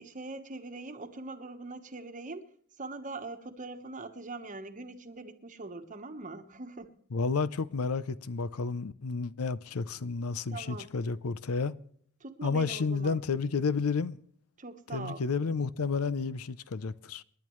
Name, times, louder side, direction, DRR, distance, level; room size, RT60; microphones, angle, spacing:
voice 1, 0.0-2.4 2.8-6.9 10.5-10.9 12.2-13.2 14.6-15.2, right 3 dB, 35° right, 1.2 m, -42 dB
voice 2, 7.1-11.7 12.4-14.2 14.9-17.2, left 4 dB, 90° left, 0.6 m, -31 dB
28.5 x 10.5 x 3.1 m
head